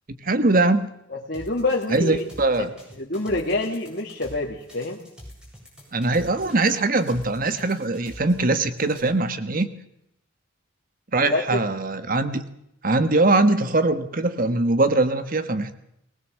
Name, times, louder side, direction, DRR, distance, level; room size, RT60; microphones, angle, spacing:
voice 1, 0.2-0.9 1.9-2.7 5.9-9.7 11.1-12.5 12.8-15.7, right 2 dB, 45° right, 10 dB, 1.2 m, -21 dB
voice 2, 1.1-2.2 2.6-5.0 11.2-11.6, left 2 dB, 50° left, -3 dB, 2.1 m, -27 dB
sound 1, 1.3-9.0, left 1 dB, 5° right, 8.0 m, -45 dB
20.5 x 19.5 x 7.4 m, 0.79 s
head